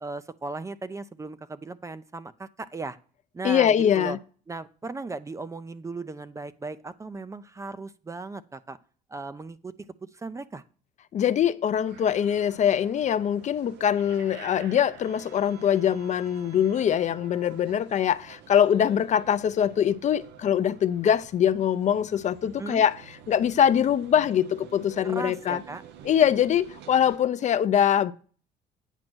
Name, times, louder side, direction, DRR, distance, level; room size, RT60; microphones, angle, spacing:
voice 1, 0.0-3.0 3.3-4.2 4.5-8.8 9.1-9.7 10.0-10.6 22.6-22.8 25.0-25.8, right 3 dB, 20° right, 0.4 m, -37 dB
voice 2, 3.4-4.2 11.1-23.0 23.3-25.6 26.0-28.1, left 9 dB, 45° left, 0.5 m, -23 dB
sound 1, 11.9-27.2, right 8 dB, 80° right, 0.8 m, -49 dB
9.0 x 5.2 x 6.0 m
cardioid pair, 110°, 17 cm